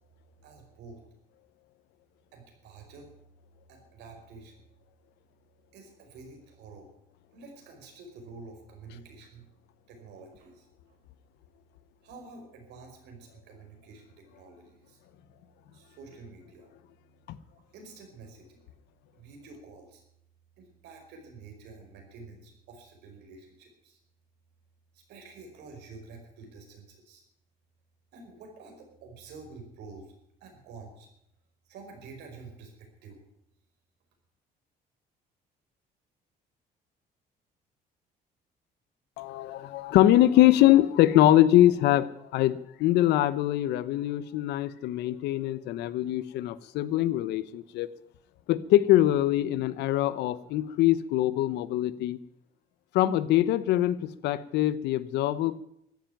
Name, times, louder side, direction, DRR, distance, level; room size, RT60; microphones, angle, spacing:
voice 1, 0.4-1.0 2.3-3.1 3.7-4.6 5.7-6.9 7.3-9.5 9.9-11.0 12.0-15.0 15.7-16.7 17.7-18.6 19.1-20.0 20.6-24.0 24.9-27.2 28.1-30.1 30.4-31.1 31.7-33.2, right 4 dB, 80° right, 3 dB, 5.3 m, -49 dB
voice 2, 39.2-47.9 48.5-52.2 52.9-55.6, left 14 dB, 85° left, 16 dB, 1.0 m, -23 dB
14.5 x 10.5 x 9.3 m, 0.79 s
cardioid pair, 110°, 17 cm